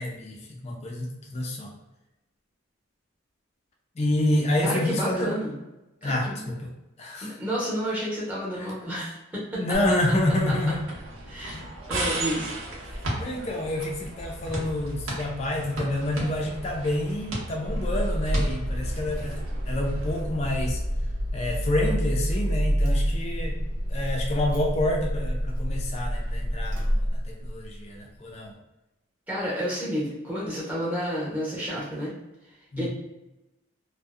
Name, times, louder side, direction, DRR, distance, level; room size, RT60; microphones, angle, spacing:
voice 1, 0.0-1.7 4.0-5.3 6.0-6.7 7.0-7.3 8.6-8.7 9.5-10.8 11.5-11.7 13.1-20.8 21.3-23.6 23.9-28.5 32.7-32.9, left 1 dB, 30° left, 0 dB, 0.3 m, -28 dB
voice 2, 4.6-5.5 6.0-6.5 7.2-9.6 11.2-11.6 11.9-12.5 29.3-32.1 32.8-32.9, equal, 10° right, -8 dB, 0.7 m, -30 dB
sound 1, 9.7-20.2, right 1 dB, 85° right, 0.8 m, -35 dB
Car / Engine starting, 17.6-27.7, equal, 50° right, 0.7 m, -28 dB
2.6 x 2.0 x 2.3 m, 0.99 s
head